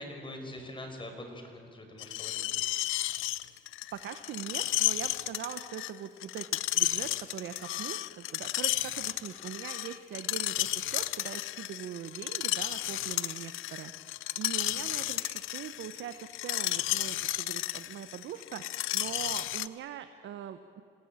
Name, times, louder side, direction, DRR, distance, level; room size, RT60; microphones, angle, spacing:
voice 1, 0.0-2.6, left 1 dB, 25° left, 4 dB, 5.5 m, -43 dB
Screech, 2.0-19.7, left 16 dB, 90° left, 0.7 m, -33 dB
voice 2, 3.9-13.9 14.4-18.6 18.9-20.8, right 9 dB, 70° right, 9 dB, 1.1 m, -42 dB
27.0 x 18.5 x 9.0 m, 2.7 s
cardioid pair, 90°, 20 cm